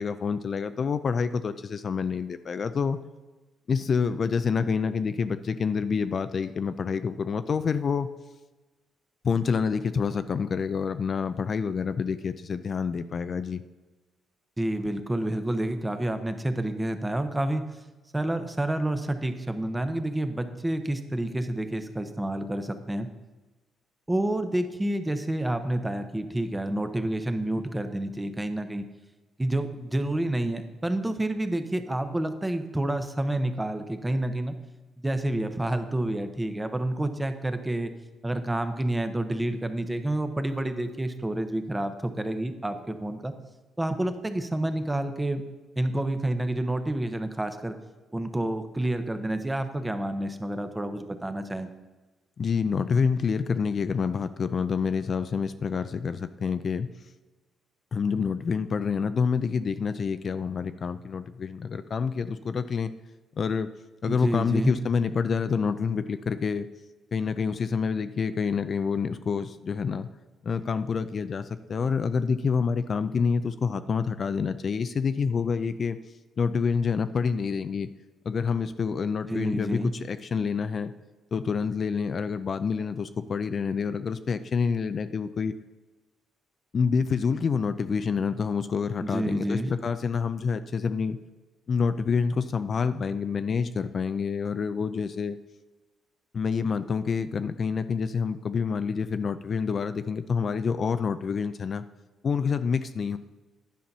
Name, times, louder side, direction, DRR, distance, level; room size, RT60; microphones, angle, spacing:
voice 1, 0.0-3.0 3.7-8.1 9.2-13.6 52.4-56.9 57.9-62.9 63.4-63.7 64.0-66.7 67.1-70.1 70.4-76.0 76.4-77.9 78.3-80.9 81.3-85.5 86.7-91.2 91.7-95.4 96.3-101.8 102.2-103.2, left 5 dB, 45° left, 11 dB, 0.4 m, -27 dB
voice 2, 14.6-17.6 18.1-23.1 24.1-28.8 29.4-34.5 35.0-37.9 38.2-43.3 43.8-45.4 45.8-47.7 48.1-51.7 64.1-64.7 79.3-79.9 89.0-89.7, right 1 dB, 15° right, 8 dB, 0.9 m, -29 dB
10.5 x 5.7 x 5.5 m, 1.2 s
cardioid pair, 90°, 0 cm